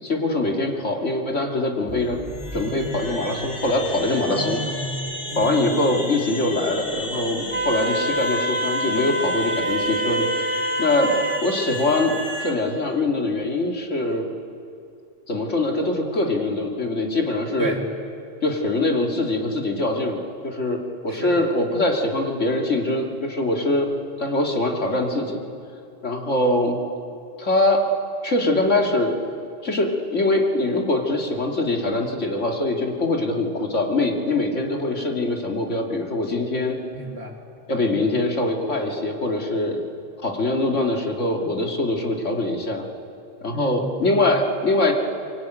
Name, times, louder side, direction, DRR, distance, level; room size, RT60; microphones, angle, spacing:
voice 1, 0.0-2.2 2.5-4.6 5.3-10.3 10.8-11.1 11.4-14.2 15.3-17.7 18.4-23.9 24.2-25.4 26.0-26.8 27.4-27.9 28.2-29.1 29.6-36.8 37.7-39.8 40.2-42.8 43.4-44.9, left 2 dB, 90° left, 1 dB, 2.9 m, -23 dB
sound 1, 1.9-12.5, left 1 dB, 55° left, 3.3 m, -33 dB
voice 2, 4.3-5.7 17.6-17.8 21.1-21.3 36.9-37.3 37.9-38.1 43.5-44.3, right 2 dB, 60° right, 1 dB, 3.1 m, -31 dB
Wind instrument woodwind instrument, 7.5-11.4, right 1 dB, 85° right, 2.7 m, -26 dB
24.0 x 23.0 x 9.2 m, 2.5 s
omnidirectional pair, 1.2 m